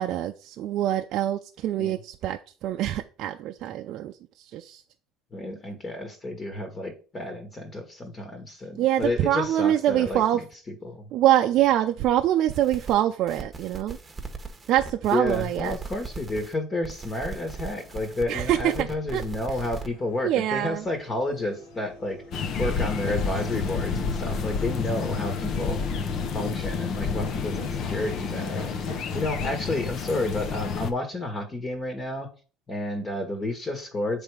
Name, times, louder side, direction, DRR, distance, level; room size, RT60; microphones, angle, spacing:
voice 1, 0.0-4.1 4.5-4.8 8.8-10.4 11.1-14.0 14.7-15.8 18.3-18.9 19.1-19.2 20.2-20.8, right 12 dB, 60° right, 5 dB, 0.4 m, -24 dB
voice 2, 5.3-11.0 15.1-22.2 22.6-25.8 26.3-28.8 29.1-32.3 32.7-34.2, left 1 dB, 30° left, 5 dB, 1.5 m, -31 dB
sound 1, 12.5-12.9 13.3-16.5 16.8-19.9, right 4 dB, 20° right, 1.1 m, -39 dB
sound 2, 17.1-29.6, left 2 dB, 80° left, 2.0 m, -44 dB
sound 3, 22.3-30.9, left 5 dB, 55° left, 0.8 m, -29 dB
7.2 x 3.4 x 4.9 m, 0.38 s
supercardioid pair, 95°, 0 cm